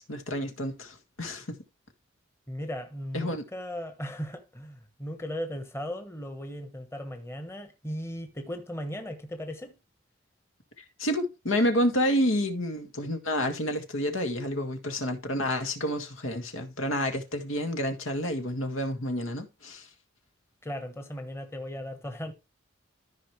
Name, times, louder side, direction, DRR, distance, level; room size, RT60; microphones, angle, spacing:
voice 1, 0.0-1.6 3.1-3.4 10.8-19.9, equal, 80° left, 1.9 m, -29 dB
voice 2, 2.5-9.8 20.6-22.3, equal, 15° left, 1.1 m, -37 dB
14.0 x 5.3 x 3.2 m
head